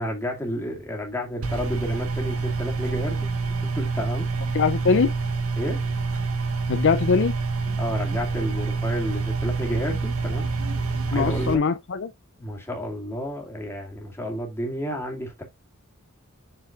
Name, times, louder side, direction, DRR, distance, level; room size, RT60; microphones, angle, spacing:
voice 1, 0.0-3.3 3.6-4.3 5.6-5.8 7.8-10.5 11.1-11.7 12.4-15.4, equal, 10° left, 2.2 m, -31 dB
sound 1, 1.4-11.5, right 4 dB, 90° right, 1.4 m, -27 dB
voice 2, 4.5-5.1 6.7-7.4 11.1-12.1, left 5 dB, 60° left, 0.5 m, -22 dB
7.5 x 6.2 x 2.5 m
head